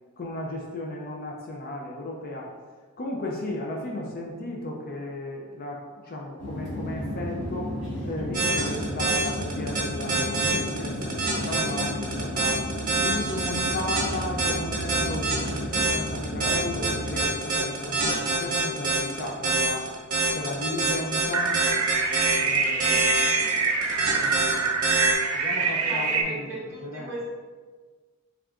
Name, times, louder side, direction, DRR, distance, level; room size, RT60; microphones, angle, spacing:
voice 1, 0.2-2.5 3.0-7.8 8.0-12.6 13.0-19.9 20.3-21.5 22.4-23.5 24.0-27.2, left 1 dB, 45° left, -1 dB, 0.5 m, -35 dB
sound 1, 6.4-17.2, left 1 dB, 80° left, 1.3 m, -33 dB
sound 2, 8.3-25.1, right 3 dB, 40° right, 1.2 m, -25 dB
sound 3, 21.3-26.2, right 4 dB, 75° right, 0.6 m, -25 dB
voice 2, 25.6-27.2, right 1 dB, 10° right, -8 dB, 1.5 m, -37 dB
6.1 x 3.5 x 2.5 m, 1.4 s
head